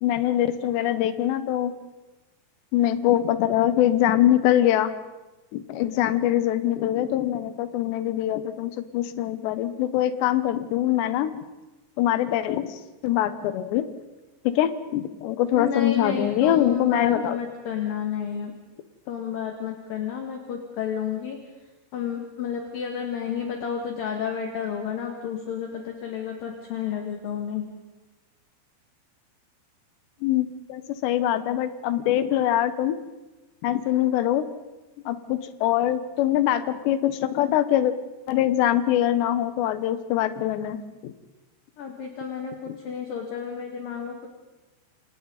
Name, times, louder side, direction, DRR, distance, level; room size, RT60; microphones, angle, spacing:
voice 1, 0.0-1.7 2.7-4.9 5.5-11.3 12.0-13.9 14.4-17.4 30.2-33.0 33.6-34.5 35.1-37.9 38.3-40.8 41.0-41.1 42.7-42.8, left 12 dB, 80° left, 11 dB, 3.3 m, -23 dB
voice 2, 15.5-18.5 19.1-21.4 21.9-27.7 41.8-44.3, left 7 dB, 60° left, 2 dB, 3.4 m, -31 dB
28.5 x 28.0 x 4.1 m, 1.1 s
omnidirectional pair, 5.0 m